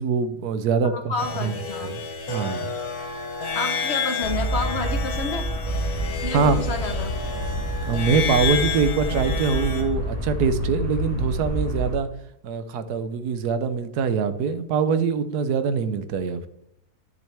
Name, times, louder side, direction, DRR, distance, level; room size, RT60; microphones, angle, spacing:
voice 1, 0.0-1.1 1.4-1.6 1.8-2.0 2.3-2.7 6.3-6.6 7.9-12.1 12.4-16.5, right 5 dB, 85° right, 11 dB, 1.3 m, -23 dB
voice 2, 0.8-1.9 3.5-5.4 6.2-7.1, left 3 dB, 45° left, 6 dB, 1.3 m, -30 dB
sound 1, 1.2-9.8, left 6 dB, 70° left, 1.7 m, -30 dB
sound 2, 4.2-12.0, right 1 dB, 20° right, 2.2 m, -28 dB
10.0 x 6.6 x 3.4 m, 0.74 s
omnidirectional pair, 1.7 m